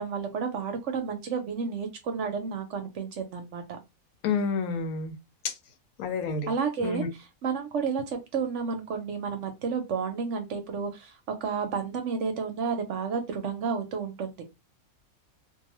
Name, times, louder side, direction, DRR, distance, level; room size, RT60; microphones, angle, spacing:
voice 1, 0.0-3.8 6.5-7.0 7.4-14.4, right 5 dB, 65° right, 0.8 m, -31 dB
voice 2, 4.2-5.1 5.4-5.5 6.0-6.5 6.8-7.1, left 5 dB, 80° left, 1.1 m, -29 dB
2.5 x 2.3 x 2.9 m
omnidirectional pair, 1.5 m